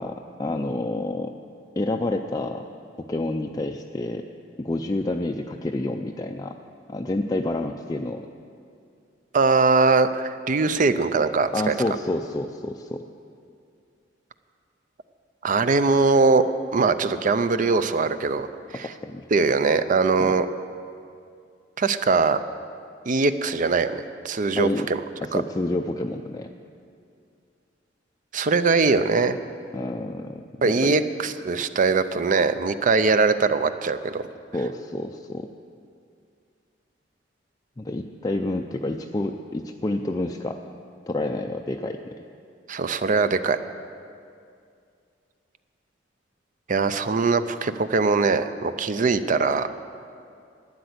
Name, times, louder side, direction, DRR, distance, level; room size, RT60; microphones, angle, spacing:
voice 1, 0.0-1.3 1.8-2.6 3.0-4.2 4.6-6.6 6.9-8.3 11.5-13.0 19.0-19.3 20.2-20.4 24.6-24.9 25.2-26.5 29.7-31.0 34.5-35.5 37.8-40.6 41.1-42.0, left 2 dB, 20° left, 3 dB, 0.4 m, -28 dB
voice 2, 9.3-11.7 15.4-16.5 16.7-18.5 18.7-18.9 19.3-20.5 21.8-22.4 23.1-25.0 25.3-25.4 28.3-29.4 30.6-34.2 42.7-43.6 46.7-49.7, right 4 dB, 45° right, 12 dB, 0.5 m, -21 dB
12.0 x 9.4 x 7.9 m, 2.4 s
head